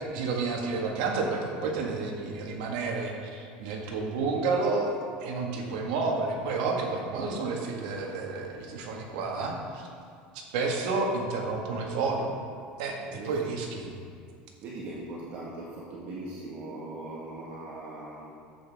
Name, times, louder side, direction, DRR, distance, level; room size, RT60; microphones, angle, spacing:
voice 1, 0.1-9.9 10.3-12.3 12.8-13.9, right 3 dB, 80° right, 0 dB, 1.7 m, -30 dB
voice 2, 13.0-13.5 14.6-18.3, right 2 dB, 50° right, -5 dB, 1.6 m, -40 dB
11.0 x 8.1 x 3.6 m, 2.3 s
cardioid pair, 150°, 4 cm